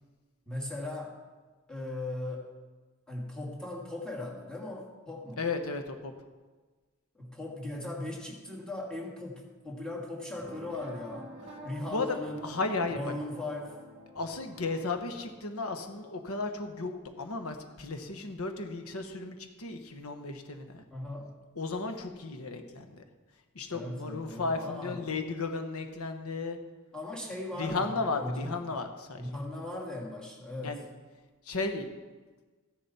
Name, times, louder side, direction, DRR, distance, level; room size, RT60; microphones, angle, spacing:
voice 1, 0.5-1.1 1.7-2.5 3.1-5.4 7.1-11.3 11.6-12.4 12.9-13.8 20.9-21.3 23.7-25.0 26.9-28.6 29.2-30.8, left 2 dB, 5° left, -2 dB, 2.2 m, -38 dB
voice 2, 5.4-6.1 11.9-12.2 12.4-13.0 14.1-20.8 21.6-23.0 23.5-26.6 27.6-29.3 30.6-30.8 31.4-31.9, left 3 dB, 80° left, 6 dB, 1.1 m, -34 dB
sound 1, 10.4-16.7, right 1 dB, 30° right, 1.7 m, -49 dB
15.5 x 10.5 x 4.3 m, 1.3 s
head